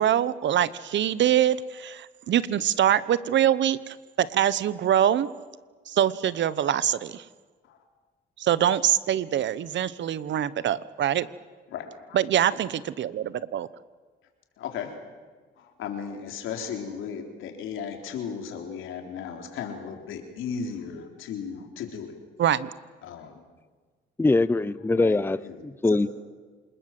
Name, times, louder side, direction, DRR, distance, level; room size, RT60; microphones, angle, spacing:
voice 1, 0.0-5.3 5.9-7.2 8.4-11.3 12.1-13.7 22.4-22.7, right 10 dB, 65° right, 18 dB, 1.1 m, -24 dB
voice 2, 11.7-12.2 14.6-14.9 15.6-22.1 23.0-23.4 24.9-26.0, left 7 dB, 85° left, 4 dB, 3.9 m, -36 dB
voice 3, 24.2-25.4 25.6-26.1, left 2 dB, 10° left, 17 dB, 0.7 m, -22 dB
27.0 x 20.0 x 7.7 m, 1.4 s
cardioid pair, 90°, 20 cm